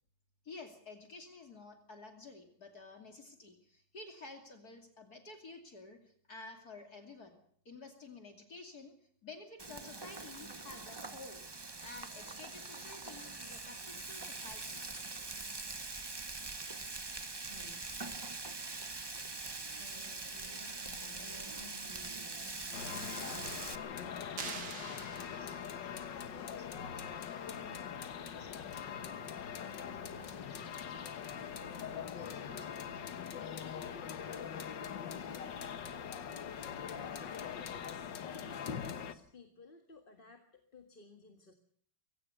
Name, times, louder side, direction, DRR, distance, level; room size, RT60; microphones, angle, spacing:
voice 1, 0.4-7.4 7.6-8.9 9.2-11.4 11.8-14.8, left 3 dB, 55° left, 4 dB, 3.1 m, -51 dB
Frying (food), 9.6-23.8, right 3 dB, 25° right, 0.6 m, -43 dB
voice 2, 17.4-18.0 19.6-31.0 31.4-34.3, left 3 dB, 10° left, 6 dB, 5.5 m, -57 dB
sound 1, 22.7-39.1, left 7 dB, 75° left, 1.9 m, -42 dB
sound 2, 24.4-25.9, right 5 dB, 60° right, 2.6 m, -44 dB
voice 3, 36.3-37.8 38.2-41.5, left 3 dB, 30° left, 5 dB, 1.9 m, -58 dB
23.0 x 17.0 x 6.8 m, 0.62 s
omnidirectional pair, 2.0 m